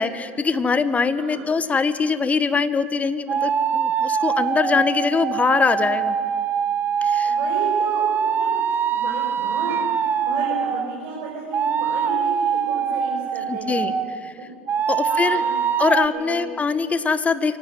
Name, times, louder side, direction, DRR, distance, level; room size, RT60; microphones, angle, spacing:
voice 1, 0.0-6.2 7.0-7.4 13.5-14.3 14.9-15.4 15.8-17.6, left 5 dB, 20° left, 12 dB, 1.5 m, -22 dB
voice 2, 1.1-1.4 7.2-8.0 8.3-8.5 8.9-13.8 15.1-15.6 16.1-16.5, right 3 dB, 60° right, -2 dB, 5.9 m, -33 dB
sound 1, 3.3-10.9 11.5-14.2 14.7-16.1, right 7 dB, 30° right, 1.3 m, -23 dB
24.0 x 18.0 x 9.7 m, 2.1 s
hypercardioid pair, 80°, 7 cm